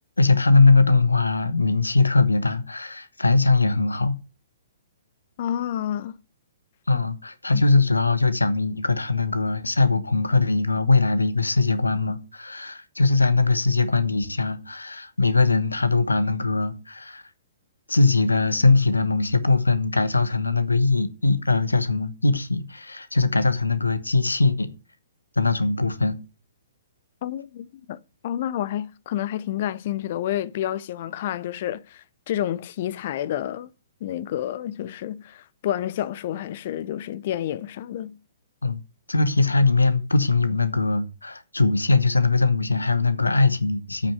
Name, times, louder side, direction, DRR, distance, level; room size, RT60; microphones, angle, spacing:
voice 1, 0.2-4.2 6.9-17.2 17.9-24.7 25.4-26.2 38.6-38.8 39.1-44.1, left 3 dB, 80° left, 1.2 m, -21 dB
voice 2, 5.4-6.2 6.9-7.0 7.5-7.6 27.2-28.0 28.2-33.7 34.0-38.2, left 11 dB, 45° left, 0.7 m, -29 dB
8.5 x 6.1 x 7.8 m
figure-of-eight pair, 120°, 0 cm